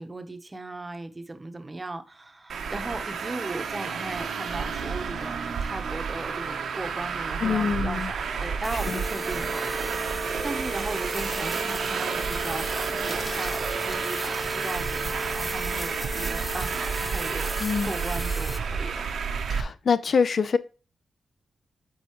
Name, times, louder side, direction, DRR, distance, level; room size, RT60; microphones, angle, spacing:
voice 1, 0.0-17.6 17.8-19.0, right 2 dB, 25° right, 0.8 m, -37 dB
Traffic noise roadway noise, 2.5-19.6, right 6 dB, 85° right, 0.7 m, -31 dB
voice 2, 7.4-8.1 8.9-9.0 17.6-17.9 19.5-20.6, left 5 dB, 60° left, 0.4 m, -25 dB
sound 1, 8.6-18.6, equal, 10° left, 0.5 m, -36 dB
sound 2, 13.0-15.1 17.6-17.8, left 1 dB, 35° left, 1.3 m, -43 dB
8.1 x 4.0 x 3.0 m
cardioid pair, 80°, 0 cm